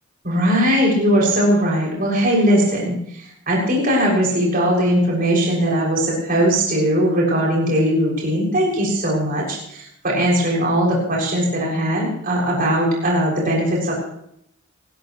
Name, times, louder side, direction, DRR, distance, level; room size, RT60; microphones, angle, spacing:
voice 1, 0.2-13.9, equal, 40° right, -3 dB, 6.9 m, -19 dB
28.0 x 13.5 x 3.2 m, 0.71 s
head